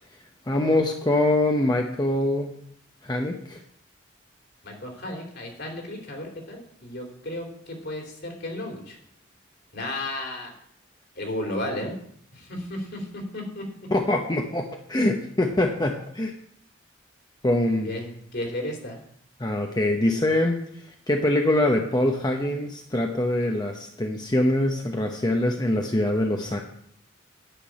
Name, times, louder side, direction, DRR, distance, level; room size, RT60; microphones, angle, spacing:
voice 1, 0.5-2.6 3.0-3.6 13.9-16.3 17.4-18.0 19.4-20.6 21.1-26.6, left 1 dB, 20° left, 2 dB, 0.9 m, -24 dB
voice 2, 4.6-9.0 9.7-10.5 11.1-11.9 12.3-13.6 17.8-19.0, left 1 dB, 60° left, 2 dB, 3.0 m, -33 dB
10.0 x 6.1 x 8.5 m, 0.68 s
head